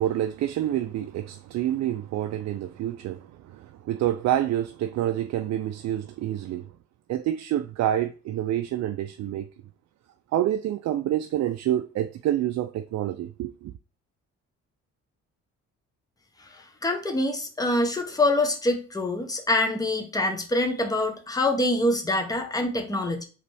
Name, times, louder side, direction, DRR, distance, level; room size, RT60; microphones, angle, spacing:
voice 1, 0.0-6.7 7.1-9.5 10.3-13.7, right 12 dB, 60° right, 0.4 m, -27 dB
voice 2, 16.5-23.3, left 2 dB, 10° left, 0.9 m, -25 dB
4.0 x 3.2 x 3.3 m
cardioid pair, 90°, 30 cm